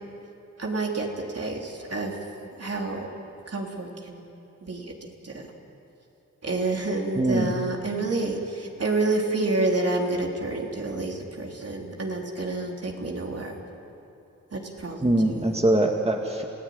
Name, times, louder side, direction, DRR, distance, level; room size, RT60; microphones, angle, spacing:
voice 1, 0.6-1.1 1.3-2.1 2.6-3.1 3.5-4.3 4.6-4.9 5.2-5.5 6.4-13.5 14.5-15.5, right 2 dB, 55° right, 0 dB, 3.6 m, -28 dB
voice 2, 7.2-7.5 15.0-16.4, right 1 dB, 20° right, 2 dB, 2.0 m, -22 dB
28.0 x 16.5 x 9.6 m, 2.8 s
cardioid pair, 60°, 30 cm